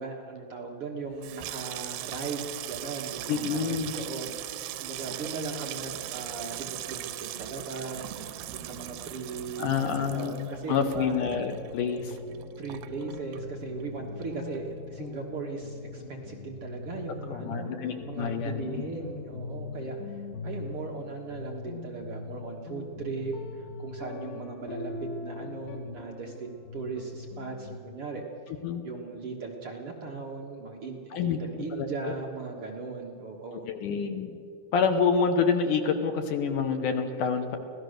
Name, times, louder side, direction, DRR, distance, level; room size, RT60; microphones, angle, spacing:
voice 1, 0.0-11.1 12.6-17.7 18.0-28.5 28.8-33.7, right 4 dB, 50° right, 0 dB, 1.8 m, -38 dB
Water tap faucet / Sink (filling or washing), 1.1-13.9 14.2-14.9 15.1-15.5, right 14 dB, 90° right, 2.6 m, -40 dB
voice 2, 3.3-4.0 9.6-12.2 17.3-18.7 28.6-28.8 31.1-31.4 31.7-32.1 33.7-34.4 34.7-37.6, left 6 dB, 70° left, 6 dB, 2.4 m, -27 dB
sound 1, 11.1-27.8, left 4 dB, 90° left, 3.4 m, -41 dB
25.0 x 17.5 x 6.6 m, 2.7 s
omnidirectional pair, 4.2 m